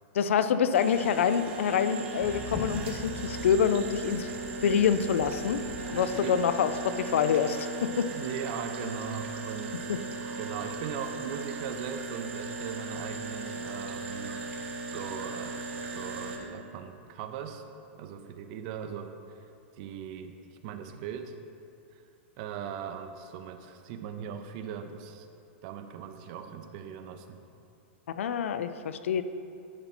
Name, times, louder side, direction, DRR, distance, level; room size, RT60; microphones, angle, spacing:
voice 1, 0.1-4.3 4.6-5.6 5.9-8.1 9.9-10.0 28.1-29.2, left 7 dB, 85° left, 11 dB, 0.4 m, -26 dB
sound 1, 0.7-16.4, right 3 dB, 70° right, 1.3 m, -38 dB
sound 2, 2.2-7.0, left 3 dB, 15° left, 0.7 m, -42 dB
voice 2, 6.1-6.5 7.8-9.9 10.4-14.4 14.9-15.6 15.8-17.6 17.9-19.4 19.8-20.4 20.6-21.3 22.4-25.3 25.6-27.4, right 8 dB, 40° right, 7 dB, 0.6 m, -39 dB
10.5 x 4.3 x 4.3 m, 2.6 s
supercardioid pair, 160°, 7 cm